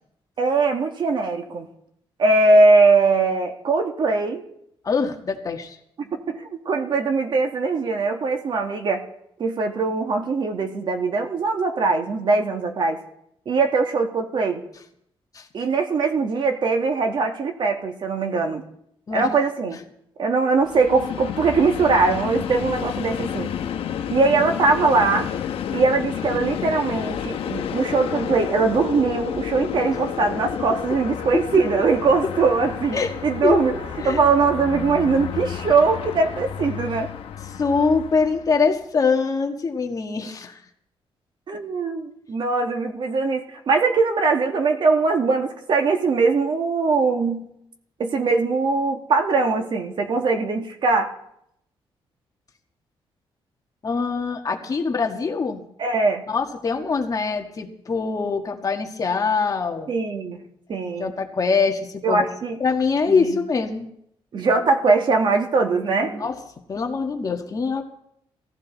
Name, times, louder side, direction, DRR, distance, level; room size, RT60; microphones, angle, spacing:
voice 1, 0.4-1.7 2.2-4.4 6.0-9.0 9.4-13.0 13.5-14.6 15.5-18.6 19.1-19.8 20.2-23.5 24.1-25.3 25.7-33.7 34.0-37.1 41.5-47.5 48.0-51.1 55.8-56.2 59.9-60.4 60.7-61.1 62.0-62.6 63.1-63.4 64.3-66.3, right 4 dB, 55° right, 4 dB, 2.2 m, -21 dB
voice 2, 4.8-5.8 15.3-15.5 19.1-19.3 32.9-33.1 33.4-33.6 34.0-34.3 37.6-40.6 53.8-55.6 56.3-59.9 61.0-62.3 62.6-63.9 66.2-66.4 66.7-67.8, left 4 dB, 35° left, 4 dB, 1.8 m, -23 dB
Train, 20.6-38.7, left 9 dB, 80° left, 1.3 m, -31 dB
18.5 x 15.0 x 4.1 m, 0.75 s
cardioid pair, 120°, 10 cm